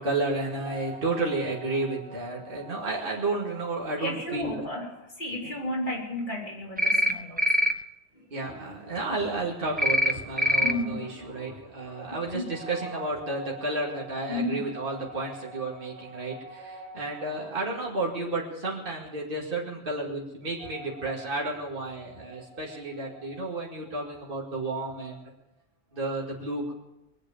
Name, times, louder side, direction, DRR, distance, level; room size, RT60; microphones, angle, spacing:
voice 1, 0.0-4.9 5.4-5.5 8.3-25.3 25.9-26.7, right 2 dB, 55° right, -4 dB, 2.5 m, -32 dB
voice 2, 4.0-4.9 5.2-7.7 8.2-8.3 10.6-11.1 12.3-12.5 14.3-14.6, left 1 dB, 45° left, -2 dB, 3.7 m, -33 dB
sound 1, 6.8-7.1 7.4-7.7 9.8-10.1 10.4-10.7, equal, 10° right, 0.4 m, -22 dB
22.5 x 8.3 x 7.1 m, 0.95 s
omnidirectional pair, 1.1 m